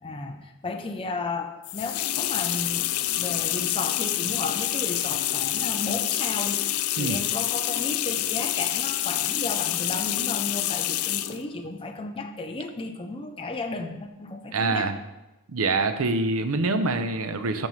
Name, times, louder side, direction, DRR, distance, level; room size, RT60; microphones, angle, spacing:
voice 1, 0.0-2.9 3.2-6.6 7.0-14.9, left 3 dB, 25° left, 4 dB, 0.5 m, -33 dB
sound 1, 1.6-11.4, left 13 dB, 85° left, 0.4 m, -27 dB
voice 2, 14.5-15.0 15.5-17.7, right 3 dB, 80° right, 9 dB, 0.7 m, -25 dB
13.0 x 5.3 x 3.2 m, 1.0 s
head